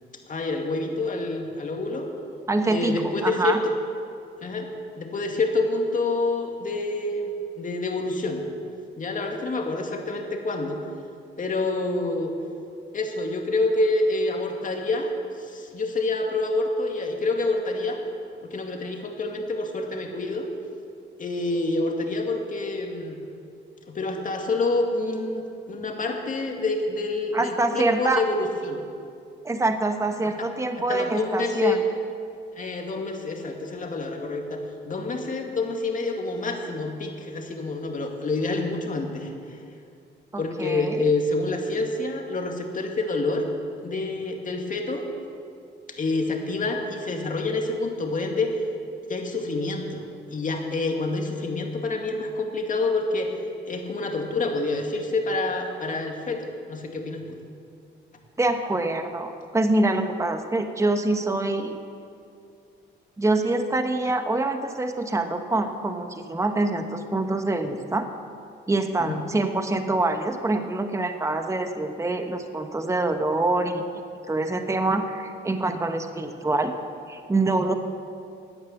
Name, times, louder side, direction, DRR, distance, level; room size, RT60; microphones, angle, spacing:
voice 1, 0.3-2.1 2.7-3.6 4.4-4.7 5.0-8.4 9.0-10.8 11.4-12.3 12.9-15.1 15.4-18.0 18.4-20.5 21.2-23.2 23.9-28.8 30.4-30.5 30.9-31.8 32.6-39.6 40.4-43.5 43.8-45.0 46.0-48.5 49.1-50.0 50.3-53.3 53.7-57.4 69.0-69.2, left 2 dB, 40° left, 2 dB, 2.3 m, -27 dB
voice 2, 2.5-3.6 27.3-28.2 29.4-31.8 40.3-41.0 58.4-61.8 63.2-68.1 68.7-74.0 74.3-76.8 77.1-77.7, right 2 dB, 15° right, 7 dB, 1.0 m, -25 dB
15.5 x 9.5 x 7.3 m, 2.4 s
cardioid pair, 90°, 20 cm